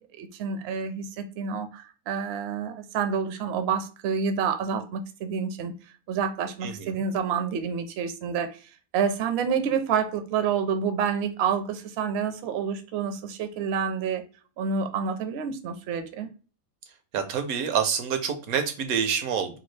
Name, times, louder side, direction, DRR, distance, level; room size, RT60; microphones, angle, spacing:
voice 1, 0.2-5.7 6.1-8.6 8.9-14.2 14.6-16.3, right 6 dB, 65° right, 0.6 m, -28 dB
voice 2, 17.1-19.6, right 7 dB, 85° right, 1.1 m, -27 dB
2.9 x 2.3 x 3.1 m
omnidirectional pair, 1.5 m